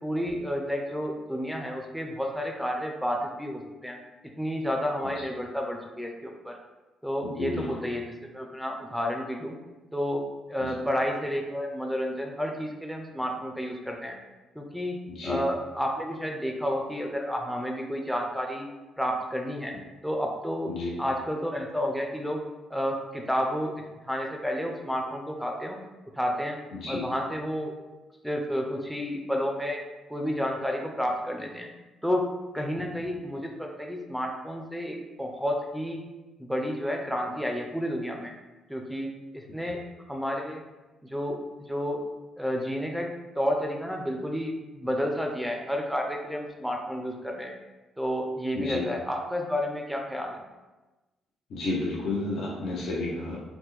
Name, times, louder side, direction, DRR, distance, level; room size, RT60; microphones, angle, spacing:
voice 1, 0.0-4.0 4.4-6.6 7.0-9.6 9.9-14.2 14.5-18.7 19.0-19.7 20.0-20.7 21.0-22.4 22.7-25.8 26.1-26.6 26.9-27.7 28.2-29.8 30.1-31.7 32.0-36.0 36.4-38.3 38.7-39.8 40.1-40.6 41.0-41.4 41.7-42.0 42.4-47.5 48.0-50.4, equal, ahead, 1 dB, 0.5 m, -31 dB
voice 2, 26.7-27.0 48.5-48.8 51.5-53.4, left 2 dB, 70° left, -4 dB, 0.7 m, -31 dB
3.0 x 2.1 x 3.6 m, 1.1 s
cardioid pair, 90°, 0 cm